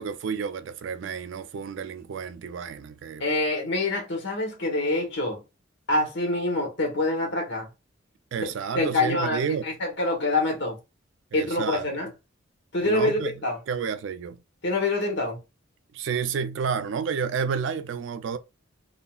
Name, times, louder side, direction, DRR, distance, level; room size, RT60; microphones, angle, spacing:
voice 1, 0.0-3.2 8.3-9.6 11.3-11.9 12.8-14.4 15.9-18.4, right 6 dB, 65° right, 0.3 m, -30 dB
voice 2, 3.2-5.4 5.9-7.7 8.7-10.8 11.3-12.1 12.7-13.6 14.6-15.4, left 2 dB, 60° left, 1.2 m, -26 dB
3.7 x 2.0 x 2.3 m
head